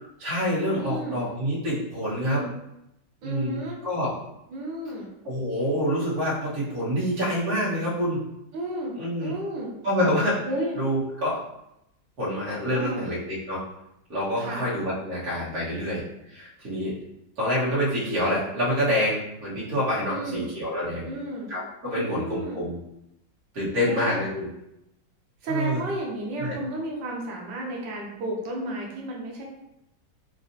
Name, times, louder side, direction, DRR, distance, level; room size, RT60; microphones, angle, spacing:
voice 1, 0.2-2.4 3.2-4.1 5.3-8.2 9.0-9.3 9.8-10.4 10.8-11.4 12.2-13.6 14.1-16.0 16.3-17.0 17.4-21.1 21.5-22.8 23.5-24.5 25.5-25.8 26.4-26.6, equal, 55° right, -8 dB, 1.8 m, -27 dB
voice 2, 0.7-1.2 2.2-2.5 3.2-3.8 4.5-5.1 8.5-8.9 9.2-9.7 10.4-10.8 12.7-13.1 14.4-14.7 19.6-19.8 20.1-20.4 21.0-21.5 21.9-22.6 23.8-24.2 25.4-29.4, right 1 dB, 80° right, -1 dB, 1.4 m, -32 dB
4.1 x 2.4 x 2.6 m, 0.84 s
omnidirectional pair, 2.0 m